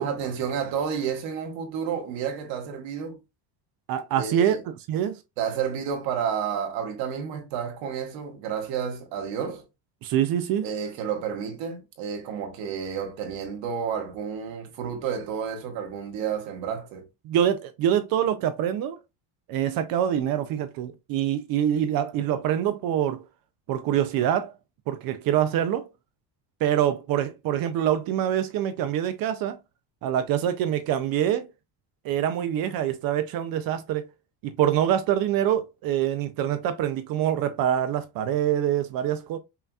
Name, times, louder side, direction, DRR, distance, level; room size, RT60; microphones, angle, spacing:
voice 1, 0.0-3.2 4.2-4.6 5.4-9.6 10.6-17.0, right 7 dB, 75° right, 1.5 m, -31 dB
voice 2, 3.9-4.6 4.9-5.2 10.0-10.7 17.2-19.0 19.5-23.2 23.7-24.5 24.9-25.9 26.6-29.6 30.0-31.5 32.0-34.0 34.4-39.4, right 10 dB, 50° right, 0.4 m, -25 dB
5.6 x 2.8 x 2.3 m
cardioid pair, 175°, 46 cm